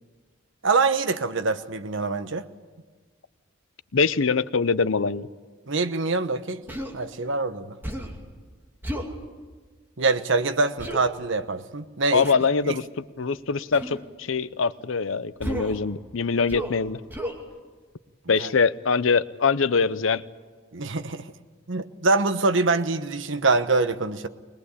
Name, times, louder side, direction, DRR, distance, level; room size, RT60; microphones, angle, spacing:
voice 1, 0.6-2.4 5.7-7.7 10.0-12.3 18.4-18.5 20.7-21.3 21.7-24.3, right 3 dB, 65° right, 1.1 m, -24 dB
voice 2, 3.9-5.3 12.1-17.0 18.3-20.2, left 5 dB, 75° left, 0.7 m, -23 dB
Human voice, 6.7-7.0 7.8-8.2 8.8-9.1 10.8-11.0 12.2-12.5 13.7-14.0 15.4-15.8 16.5-16.8 17.1-17.4, equal, 10° right, 2.5 m, -32 dB
21.5 x 21.5 x 8.4 m
head